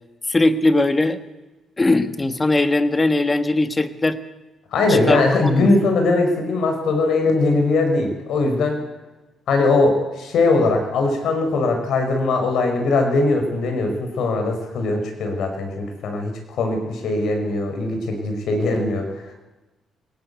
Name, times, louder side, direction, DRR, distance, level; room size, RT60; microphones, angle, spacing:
voice 1, 0.3-1.2 1.8-4.2 4.9-5.7, left 2 dB, 20° left, 10 dB, 1.6 m, -20 dB
voice 2, 4.7-8.8 9.5-19.0, left 3 dB, 75° left, 4 dB, 5.1 m, -20 dB
20.5 x 18.5 x 8.2 m, 1.1 s
cardioid pair, 90°, 0 cm